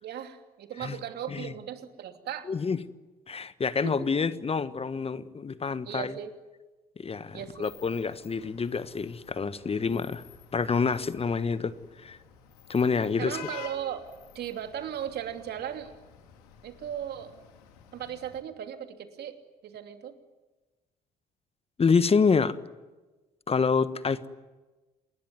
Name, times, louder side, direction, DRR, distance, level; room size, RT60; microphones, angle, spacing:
voice 1, 0.0-2.5 3.8-4.1 5.8-6.3 7.3-7.7 13.2-14.1 14.3-15.9 16.6-17.3 17.9-19.4 19.6-20.1, right 9 dB, 55° right, 2.9 m, -37 dB
voice 2, 2.5-2.8 3.3-6.1 7.0-10.2 10.5-11.7 12.0-12.2 12.7-13.4 21.8-22.6 23.5-24.3, left 5 dB, 30° left, 1.4 m, -27 dB
Vehicle horn car horn honking / Traffic noise roadway noise, 7.3-18.4, left 8 dB, 75° left, 3.1 m, -51 dB
28.5 x 21.0 x 9.5 m
hypercardioid pair, 50°, 19 cm